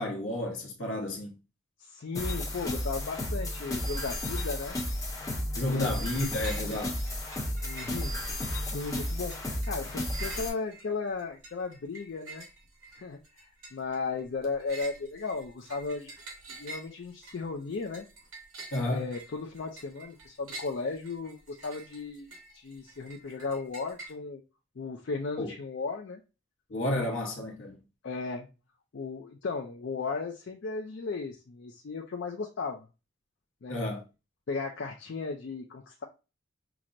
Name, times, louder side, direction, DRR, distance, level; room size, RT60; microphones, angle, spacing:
voice 1, 0.0-1.4 5.5-7.0 18.7-19.1 25.4-25.5 26.7-27.8 33.7-34.0, left 1 dB, 80° left, 1.0 m, -31 dB
voice 2, 1.8-4.8 5.6-5.9 7.6-8.1 8.7-9.4 9.7-12.5 12.9-16.1 16.5-18.1 18.9-24.4 24.8-26.2 26.9-27.1 28.0-28.5 28.9-32.9 33.6-33.8 34.5-36.0, left 4 dB, 60° left, 0.4 m, -36 dB
sound 1, 2.1-10.5, left 1 dB, 15° left, 0.8 m, -33 dB
sound 2, 6.4-6.8 7.1-8.5 8.9-24.1, right 2 dB, 85° right, 1.0 m, -48 dB
5.8 x 2.0 x 2.5 m
head